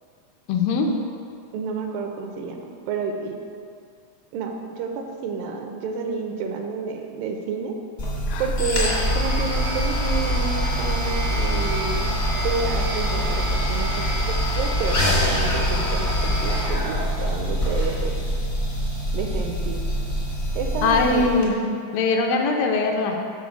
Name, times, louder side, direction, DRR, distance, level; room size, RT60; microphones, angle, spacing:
voice 1, 0.5-0.9 8.3-8.5 20.8-21.6 21.9-23.2, left 4 dB, 80° left, 2 dB, 2.4 m, -21 dB
voice 2, 1.5-3.4 4.3-7.8 8.4-12.2 12.4-18.2 19.1-19.8 20.6-21.5, right 5 dB, 85° right, 3 dB, 2.3 m, -30 dB
sound 1, 8.0-21.5, equal, 55° left, 0.7 m, -24 dB
7.2 x 4.6 x 6.1 m, 2.3 s
omnidirectional pair, 4.0 m